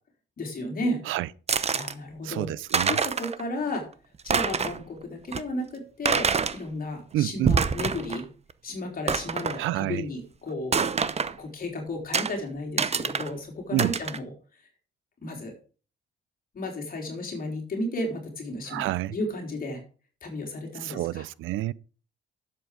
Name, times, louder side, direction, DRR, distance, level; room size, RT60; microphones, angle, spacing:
voice 1, 0.4-1.0 1.7-2.5 2.9-3.9 4.2-8.3 8.6-10.8 11.3-14.3 15.2-15.5 16.5-19.8 20.2-21.3, left 1 dB, 45° left, 3.8 m, -33 dB
sound 1, 1.5-1.9 2.4-2.5 2.7-3.4 3.7-3.8 4.2-4.8 5.3-5.4 6.1-6.6 7.3-8.2 8.5-8.6 9.1-9.6 10.7-11.3 12.1-12.3 12.8-13.3 13.8-14.2, right 5 dB, 30° right, 0.8 m, -26 dB
voice 2, 2.2-3.0 7.1-7.6 9.6-10.1 13.7-13.9 18.7-19.2 20.8-21.7, right 15 dB, 85° right, 0.5 m, -29 dB
11.0 x 7.8 x 4.9 m
cardioid pair, 90°, 20 cm